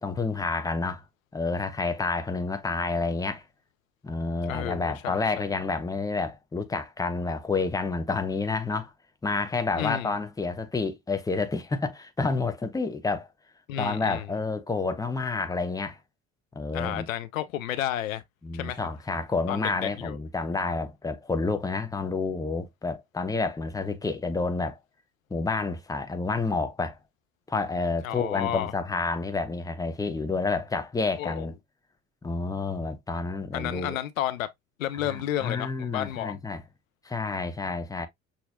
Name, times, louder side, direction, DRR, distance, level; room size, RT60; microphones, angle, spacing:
voice 1, 0.0-1.0 1.3-3.4 4.0-8.9 9.2-13.3 13.8-16.0 16.5-17.1 18.4-24.8 25.3-27.0 27.5-31.5 32.2-34.0 35.0-36.6 37.0-38.1, left 3 dB, 10° left, 0.7 m, -29 dB
voice 2, 4.5-5.5 9.8-10.2 13.7-14.3 16.7-18.2 18.5-18.8 19.5-20.2 28.0-28.7 31.2-31.5 33.5-34.5 34.8-36.3, left 12 dB, 80° left, 0.5 m, -31 dB
6.0 x 2.8 x 2.5 m
figure-of-eight pair, 55°, 40 cm